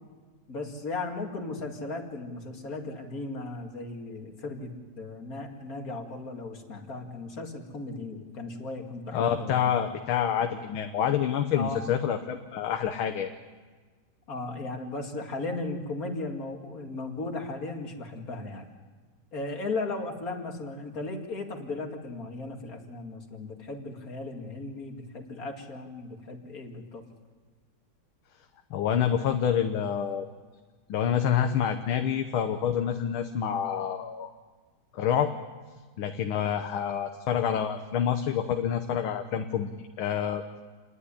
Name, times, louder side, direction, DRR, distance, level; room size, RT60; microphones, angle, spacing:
voice 1, 0.5-9.7 11.5-11.8 14.3-18.7 19.3-27.0, left 3 dB, 40° left, 2 dB, 2.7 m, -36 dB
voice 2, 9.1-13.3 28.7-30.3 30.9-34.3 34.9-35.3 36.0-39.7 40.0-40.4, left 9 dB, 75° left, 6 dB, 1.8 m, -27 dB
28.5 x 11.0 x 10.0 m, 1.4 s
omnidirectional pair, 2.4 m